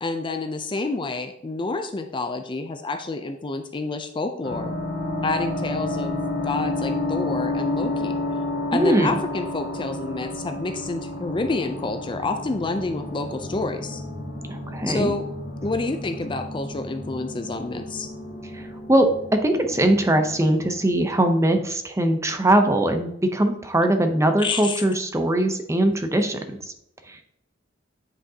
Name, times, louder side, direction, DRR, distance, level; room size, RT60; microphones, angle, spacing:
voice 1, 0.0-4.8 5.2-6.2 6.4-8.2 8.7-14.0 14.9-15.2 15.6-18.1 24.4-24.8, left 3 dB, 25° left, 7 dB, 0.4 m, -28 dB
sound 1, 4.4-20.9, left 2 dB, 65° left, 1.4 m, -31 dB
voice 2, 8.7-9.1 14.5-15.1 18.5-26.7 27.1-27.2, right 1 dB, 15° right, 6 dB, 0.6 m, -21 dB
8.8 x 5.1 x 2.8 m, 0.77 s
head